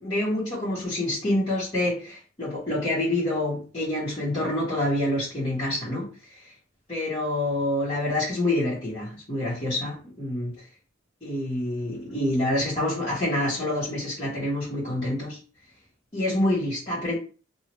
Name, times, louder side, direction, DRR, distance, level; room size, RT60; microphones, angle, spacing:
voice 1, 0.0-6.1 6.9-10.5 11.2-15.4 16.1-17.2, left 1 dB, 30° left, 1.4 m, -27 dB
2.8 x 2.7 x 3.0 m
head